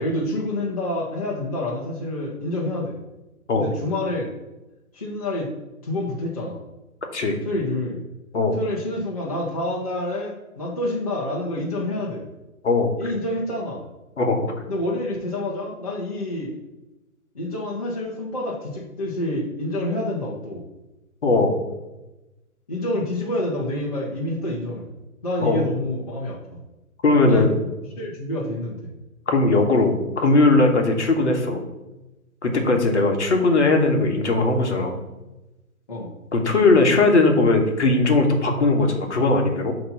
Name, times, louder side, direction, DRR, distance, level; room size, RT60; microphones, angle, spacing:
voice 1, 0.0-3.0 3.6-4.3 4.9-5.5 5.8-6.6 7.4-8.0 8.6-12.2 13.0-13.8 14.7-16.5 17.3-20.6 22.7-24.9 25.2-26.6 27.2-27.5 28.0-28.8 31.2-31.4 35.9-36.1, left 1 dB, 25° left, -5 dB, 0.8 m, -28 dB
voice 2, 14.2-14.5 21.2-21.5 25.4-25.6 27.0-27.5 29.3-31.6 32.4-34.9 36.3-39.7, left 2 dB, 50° left, 3 dB, 1.3 m, -19 dB
7.6 x 3.0 x 5.6 m, 1.0 s
hypercardioid pair, 170°, 45 cm